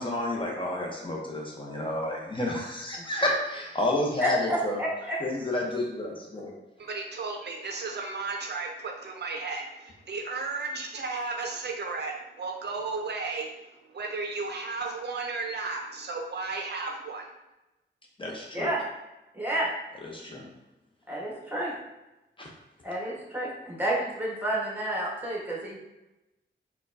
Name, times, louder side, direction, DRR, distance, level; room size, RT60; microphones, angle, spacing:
voice 1, 0.0-4.8 5.2-6.5 18.2-18.7 20.0-20.4 22.4-22.5, left 1 dB, 25° left, -1 dB, 0.7 m, -30 dB
voice 2, 4.2-5.2 18.5-18.8 19.3-19.7 21.1-21.7 22.8-25.8, right 1 dB, 10° right, -5 dB, 1.1 m, -30 dB
voice 3, 6.8-17.3, right 3 dB, 60° right, 2 dB, 0.5 m, -34 dB
4.2 x 2.2 x 2.5 m, 0.98 s
wide cardioid pair, 80°, 19 cm